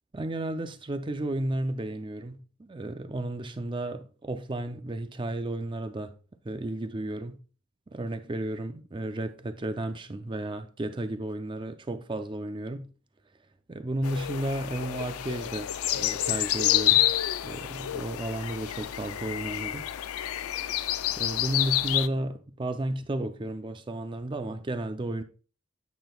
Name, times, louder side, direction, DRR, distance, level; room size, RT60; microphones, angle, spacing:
voice 1, 0.1-6.1 6.4-7.4 7.9-12.9 13.7-17.1 17.4-19.9 21.1-25.2, right 1 dB, 25° right, 0.4 m, -33 dB
sound 1, 14.0-22.1, left 13 dB, 85° left, 0.4 m, -28 dB
9.1 x 5.9 x 2.3 m
head